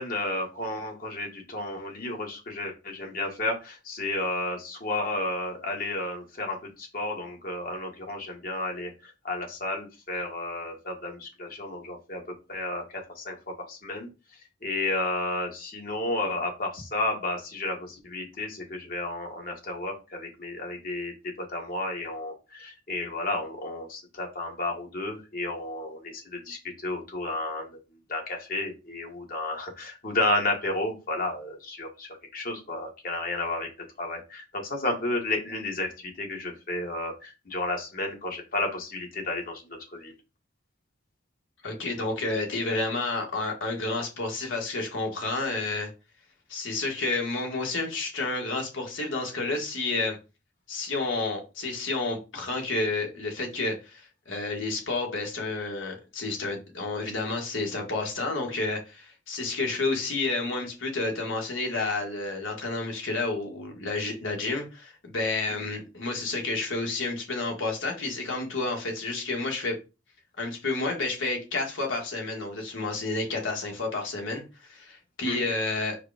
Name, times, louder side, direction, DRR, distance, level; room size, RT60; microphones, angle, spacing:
voice 1, 0.0-12.2 12.5-14.1 14.6-21.1 21.5-27.7 28.1-33.7 34.0-40.1 65.5-65.6 75.2-75.4, left 2 dB, 45° left, 1 dB, 1.2 m, -32 dB
voice 2, 41.6-45.9 46.5-50.2 50.7-69.8 70.4-76.0, left 3 dB, 80° left, 2 dB, 1.4 m, -30 dB
4.7 x 2.2 x 4.8 m, 0.29 s
head